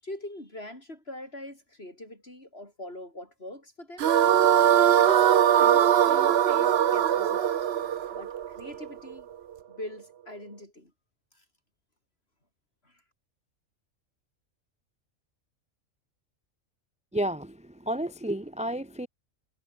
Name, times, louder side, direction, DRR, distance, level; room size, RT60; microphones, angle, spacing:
voice 1, 0.0-4.1 5.0-7.5 8.1-9.3 9.7-10.9 11.4-11.5 12.8-12.9, left 1 dB, 45° left, 8.1 m, -42 dB
sound 1, 4.0-9.2, right 10 dB, 55° right, 0.9 m, -21 dB
voice 2, 17.1-19.1, right 1 dB, 5° right, 1.1 m, -31 dB
omnidirectional pair, 1.4 m